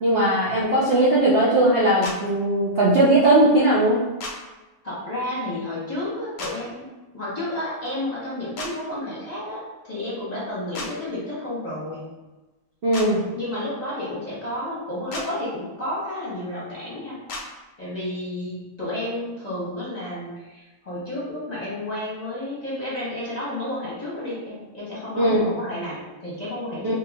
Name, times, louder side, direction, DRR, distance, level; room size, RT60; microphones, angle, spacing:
voice 1, 0.0-4.0 12.8-13.2 25.2-25.4 26.8-26.9, right 1 dB, 85° right, -7 dB, 0.5 m, -18 dB
sound 1, 2.0-2.2 4.2-4.3 6.4-6.5 8.6-8.7 10.7-10.9 12.9-13.1 15.1-15.3 17.3-17.4, left 2 dB, 65° left, 0.8 m, -32 dB
voice 2, 4.8-6.8 7.1-12.1 13.3-17.2 17.8-27.0, left 1 dB, 25° left, -9 dB, 1.1 m, -31 dB
3.3 x 2.9 x 3.6 m, 1.2 s
omnidirectional pair, 2.0 m